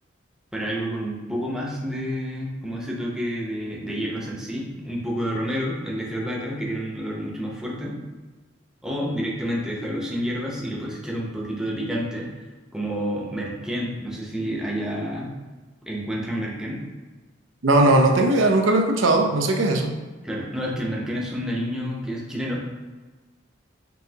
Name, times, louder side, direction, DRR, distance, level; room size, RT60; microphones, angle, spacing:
voice 1, 0.5-8.0 8.8-12.3 12.7-15.3 15.8-16.8 20.2-22.6, equal, 5° right, -3 dB, 0.7 m, -29 dB
voice 2, 17.6-19.9, right 2 dB, 80° right, 3 dB, 0.5 m, -18 dB
5.4 x 2.7 x 2.8 m, 1.3 s
head